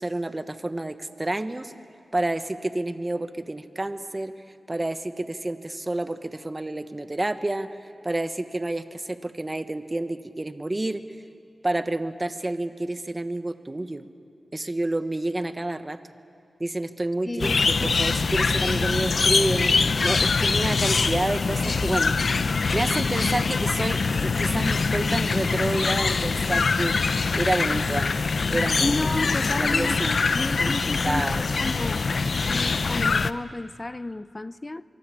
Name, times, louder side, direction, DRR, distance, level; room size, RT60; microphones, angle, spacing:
voice 1, 0.0-1.7 2.1-4.3 4.7-7.7 8.0-11.0 11.6-14.1 14.5-16.0 16.6-22.1 22.7-27.0 27.3-29.2 29.6-30.2 30.6-30.7 31.0-31.4, right 2 dB, 25° right, 1.3 m, -29 dB
voice 2, 17.3-17.9 28.8-34.8, left 2 dB, 25° left, 0.6 m, -32 dB
sound 1, 17.4-33.3, left 4 dB, 60° left, 0.7 m, -23 dB
25.0 x 23.0 x 8.6 m
cardioid pair, 65°, 0 cm